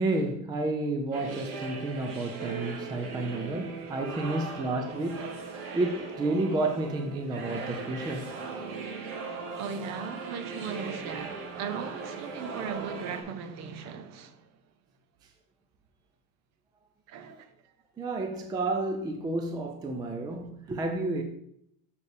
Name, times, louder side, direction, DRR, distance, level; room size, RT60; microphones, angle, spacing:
voice 1, 0.0-5.3 5.7-8.2 18.0-21.2, right 2 dB, 10° right, 0.4 m, -30 dB
sound 1, 1.1-13.2, right 4 dB, 85° right, 1.7 m, -38 dB
voice 2, 9.6-14.4 17.1-17.5, right 6 dB, 40° right, 0.7 m, -38 dB
7.1 x 6.3 x 3.3 m
supercardioid pair, 145°, 42 cm